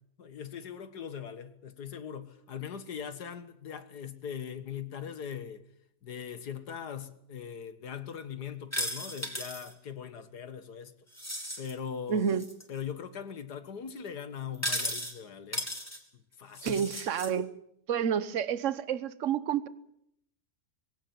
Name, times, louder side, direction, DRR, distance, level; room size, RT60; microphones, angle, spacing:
voice 1, 0.2-5.6 6.0-10.9 11.6-12.3 12.7-15.6 16.4-16.8, left 8 dB, 80° left, 2.1 m, -40 dB
sound 1, 8.7-9.7 11.1-11.7 12.3-12.6 14.5-15.1 15.5-16.0 16.5-17.3, equal, 10° left, 3.5 m, -35 dB
voice 2, 12.1-12.5 16.6-17.5 17.9-19.7, right 8 dB, 55° right, 1.3 m, -29 dB
21.5 x 16.5 x 9.4 m
omnidirectional pair, 1.7 m